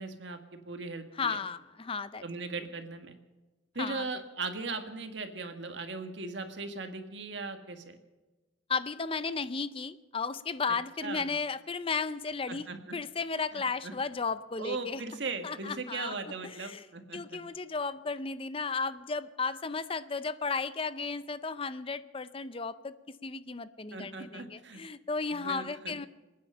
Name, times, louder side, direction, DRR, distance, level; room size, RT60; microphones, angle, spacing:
voice 1, 0.0-1.4 2.2-3.2 3.7-8.0 11.0-11.3 12.5-13.0 13.5-13.9 14.6-17.4 23.9-24.8 25.3-26.1, right 3 dB, 65° right, 6 dB, 1.8 m, -38 dB
voice 2, 1.2-2.2 3.8-4.1 8.7-12.7 12.9-15.0 15.4-16.1 16.6-16.8 17.1-22.9 23.2-26.1, left 4 dB, 30° left, 14 dB, 0.5 m, -34 dB
26.5 x 9.5 x 5.6 m, 1.2 s
head